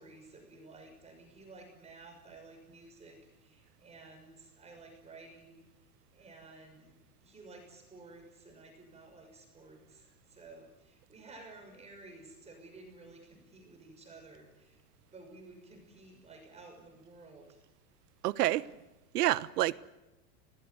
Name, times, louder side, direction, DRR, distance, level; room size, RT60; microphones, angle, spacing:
voice 1, 0.0-5.6 6.1-6.9 7.2-14.8 15.1-17.6 18.4-18.8, right 3 dB, 15° right, 6.2 m, -53 dB
voice 2, 18.2-18.7 19.1-19.8, right 15 dB, 75° right, 1.2 m, -28 dB
28.0 x 19.0 x 9.6 m
supercardioid pair, 155°, 48 cm